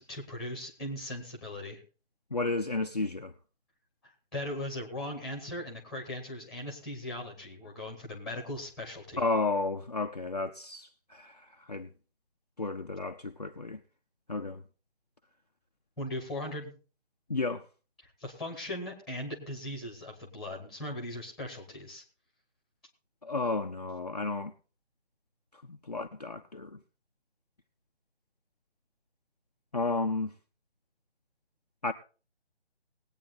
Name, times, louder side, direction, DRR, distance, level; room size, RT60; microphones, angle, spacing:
voice 1, 0.0-1.8 4.3-9.2 16.0-16.7 18.2-22.0, left 1 dB, ahead, 1.2 m, -39 dB
voice 2, 2.3-3.3 9.2-11.9 12.6-13.8 14.3-14.6 17.3-17.6 23.2-24.5 25.7-26.8 29.7-30.3 31.8-31.9, left 3 dB, 40° left, 0.5 m, -32 dB
19.0 x 8.9 x 4.1 m
figure-of-eight pair, 155°, 33 cm